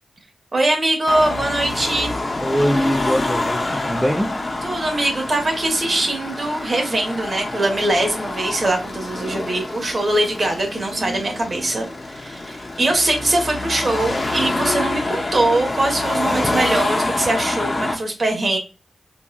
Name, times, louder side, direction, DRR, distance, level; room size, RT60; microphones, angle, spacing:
voice 1, 0.5-2.2 4.6-18.6, right 2 dB, 45° right, 1.1 m, -22 dB
Car passing by / Traffic noise roadway noise / Engine, 1.1-18.0, left 2 dB, 35° left, 0.7 m, -26 dB
voice 2, 2.4-4.4 16.3-16.4, equal, 5° right, 0.3 m, -22 dB
4.1 x 2.3 x 2.2 m
cardioid pair, 80°, 0 cm